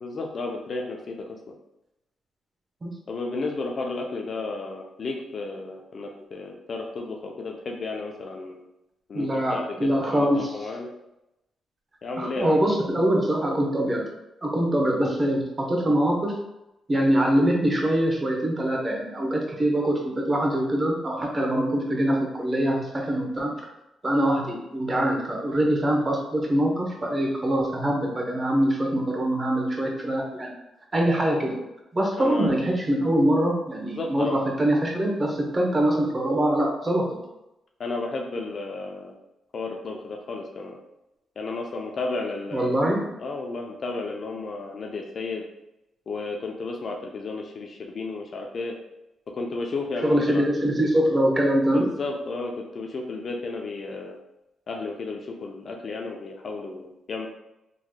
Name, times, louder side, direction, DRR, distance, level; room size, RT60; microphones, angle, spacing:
voice 1, 0.0-1.2 3.1-8.6 9.1-10.9 12.0-12.6 32.2-32.6 33.8-34.4 37.8-39.1 39.5-40.8 41.4-42.7 43.2-45.4 46.1-48.8 49.3-50.4 51.7-54.2 54.7-57.3, left 3 dB, 55° left, 1 dB, 0.5 m, -33 dB
voice 2, 9.1-10.5 12.2-14.1 14.4-16.4 16.9-23.5 24.0-30.5 30.9-31.6 31.9-37.0 42.5-43.1 50.0-51.9, right 1 dB, 25° right, -1 dB, 1.0 m, -23 dB
3.9 x 3.0 x 2.2 m, 0.90 s
cardioid pair, 75°, 0 cm